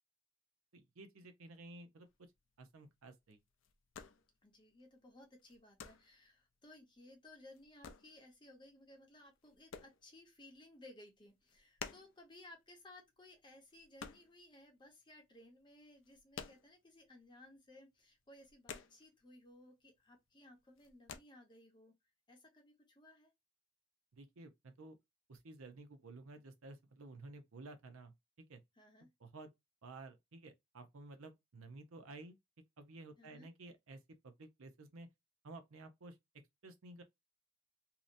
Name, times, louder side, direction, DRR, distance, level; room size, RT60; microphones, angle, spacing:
voice 1, 0.7-2.1 2.6-3.4 24.1-25.0 25.3-28.6 29.2-29.5 29.8-32.4 32.8-35.1 35.4-36.2 36.6-37.0, right 2 dB, 75° right, 0.6 m, -53 dB
sound 1, 2.1-15.0 15.3-17.2 17.5-17.7 17.9-19.5 19.8-20.3 20.6-21.2, left 6 dB, 60° left, 0.4 m, -53 dB
voice 2, 4.4-22.0 22.3-23.3 28.8-29.1 33.2-33.5, left 1 dB, 20° left, 0.7 m, -60 dB
2.8 x 2.1 x 2.5 m
head